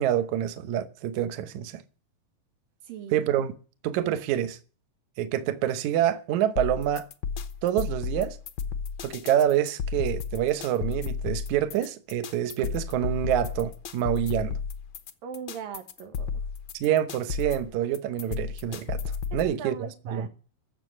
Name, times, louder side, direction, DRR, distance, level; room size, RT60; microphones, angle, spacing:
voice 1, 0.0-1.8 3.1-3.5 3.8-4.6 5.2-7.1 7.6-8.4 9.0-14.6 16.8-19.0 19.3-20.3, right 11 dB, 70° right, 2.2 m, -27 dB
voice 2, 2.8-3.3 15.2-16.4 19.3-20.3, right 7 dB, 90° right, 3.4 m, -39 dB
sound 1, 6.6-19.5, left 6 dB, 85° left, 1.0 m, -33 dB
14.0 x 7.6 x 9.9 m
omnidirectional pair, 3.9 m